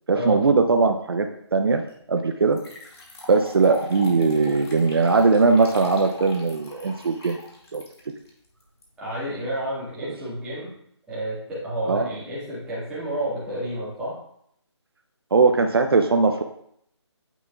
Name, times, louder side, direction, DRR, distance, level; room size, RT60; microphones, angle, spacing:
voice 1, 0.1-1.8 2.1-2.6 3.3-7.4 7.7-7.8 10.0-10.1 11.9-12.1 15.3-16.4, right 4 dB, 55° right, 5 dB, 0.6 m, -20 dB
sound 1, 1.9-2.0 2.5-8.8, left 2 dB, 55° left, 2.1 m, -40 dB
voice 2, 9.0-10.7 11.1-14.1, right 1 dB, 5° right, -10 dB, 1.7 m, -30 dB
9.2 x 5.8 x 2.3 m, 0.71 s
figure-of-eight pair, 165°, 15 cm